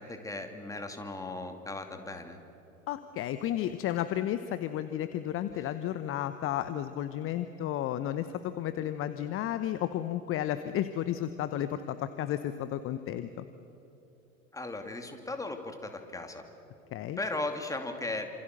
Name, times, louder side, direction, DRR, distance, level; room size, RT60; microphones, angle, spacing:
voice 1, 0.0-2.4 5.6-5.7 14.5-16.4 17.2-18.3, left 2 dB, 10° left, 5 dB, 2.7 m, -37 dB
voice 2, 2.9-13.4 16.9-17.2, left 11 dB, 30° left, 12 dB, 1.0 m, -33 dB
28.5 x 27.0 x 6.7 m, 3.0 s
figure-of-eight pair, 85°, 42 cm